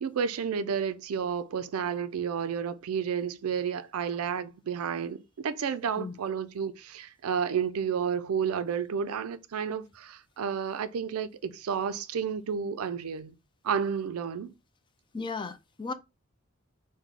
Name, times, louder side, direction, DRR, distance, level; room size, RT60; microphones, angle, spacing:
voice 1, 0.0-13.3 13.6-14.5, right 7 dB, 75° right, 0.4 m, -31 dB
voice 2, 15.1-15.9, left 4 dB, 20° left, 0.4 m, -35 dB
3.7 x 2.1 x 3.2 m
head